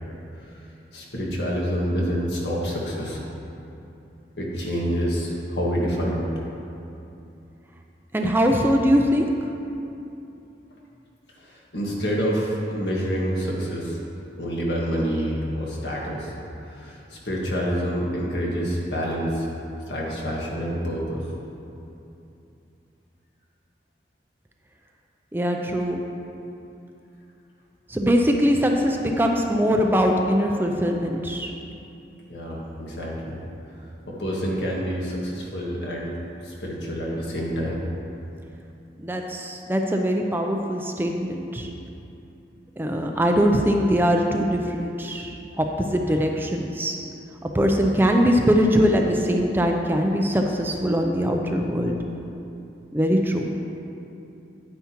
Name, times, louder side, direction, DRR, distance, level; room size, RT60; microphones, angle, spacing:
voice 1, 0.9-3.2 4.4-6.3 11.4-14.0 14.4-16.3 16.7-19.5 19.9-21.2 32.3-33.4 34.1-36.2 36.4-37.9, equal, 75° left, -3 dB, 1.6 m, -27 dB
voice 2, 8.1-9.3 25.3-26.0 27.9-31.5 39.0-41.7 42.8-45.3 45.6-47.0 47.4-52.0 52.9-53.5, equal, 10° right, 2 dB, 0.4 m, -22 dB
9.7 x 9.2 x 2.9 m, 2.8 s
head